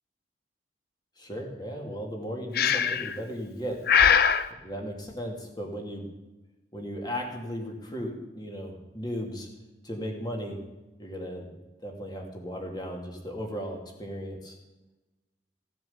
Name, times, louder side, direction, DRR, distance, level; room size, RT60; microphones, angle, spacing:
voice 1, 1.2-3.8 4.6-6.1 6.7-9.5 9.8-10.6 11.0-11.5 11.8-14.6, equal, 25° left, 1 dB, 2.5 m, -36 dB
Breathing, 2.5-3.2 3.9-4.5, left 7 dB, 55° left, 0.6 m, -21 dB
16.5 x 7.8 x 7.2 m, 1.1 s
head